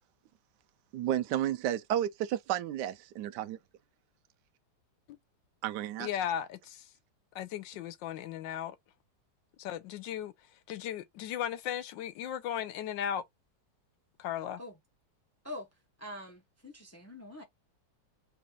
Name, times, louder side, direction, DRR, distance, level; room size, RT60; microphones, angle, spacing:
voice 1, 0.9-3.6 5.6-6.1, right 11 dB, 75° right, 1.1 m, -32 dB
voice 2, 6.0-6.9 7.3-8.8 9.6-10.3 10.7-13.2 14.2-14.6, left 10 dB, 80° left, 1.3 m, -36 dB
voice 3, 16.0-17.4, left 1 dB, 20° left, 0.4 m, -44 dB
4.3 x 2.4 x 4.0 m
omnidirectional pair, 2.0 m